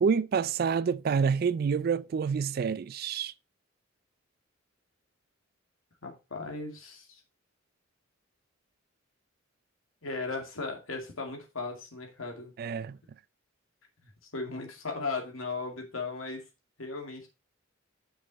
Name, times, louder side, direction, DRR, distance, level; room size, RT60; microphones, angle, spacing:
voice 1, 0.0-3.3 12.6-13.0, right 6 dB, 45° right, 0.3 m, -27 dB
voice 2, 6.0-7.2 10.0-12.5 14.0-16.4 16.8-17.3, left 3 dB, 85° left, 2.3 m, -37 dB
6.4 x 6.3 x 4.0 m
head